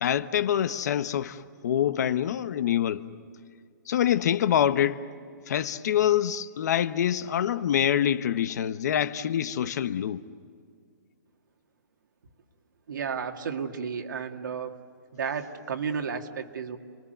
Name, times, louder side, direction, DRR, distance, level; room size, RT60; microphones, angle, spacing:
voice 1, 0.0-3.1 3.9-5.0 5.5-10.2, left 10 dB, 60° left, 1.0 m, -25 dB
voice 2, 12.9-14.8 15.1-16.8, right 6 dB, 80° right, 2.2 m, -32 dB
29.5 x 22.0 x 8.0 m
hypercardioid pair, 160°, 10 cm